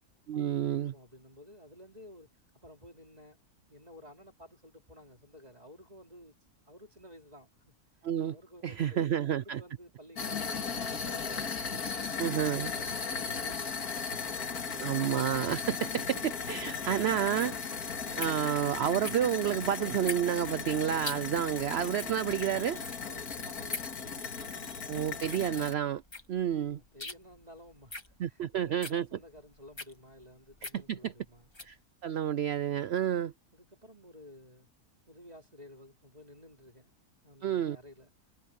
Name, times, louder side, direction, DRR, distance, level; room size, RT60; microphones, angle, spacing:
voice 1, 0.3-0.9 8.0-8.3 8.6-9.6 12.2-12.7 14.8-17.5 18.2-22.8 24.9-26.0 26.3-26.8 28.2-29.0 30.9-31.1 31.6-31.8 32.0-33.3 37.4-37.8, right 10 dB, 70° right, 0.6 m, -30 dB
voice 2, 0.9-2.3 2.6-3.4 3.7-6.3 6.7-7.7 8.3-10.7 11.0-12.1 12.4-14.3 23.1-24.5 26.5-31.5 33.5-34.7 35.1-38.1, left 1 dB, 25° right, 3.4 m, -53 dB
sound 1, 10.2-25.7, left 5 dB, 80° left, 2.4 m, -37 dB
sound 2, 16.4-31.8, left 2 dB, 20° left, 1.5 m, -44 dB
omnidirectional pair, 1.6 m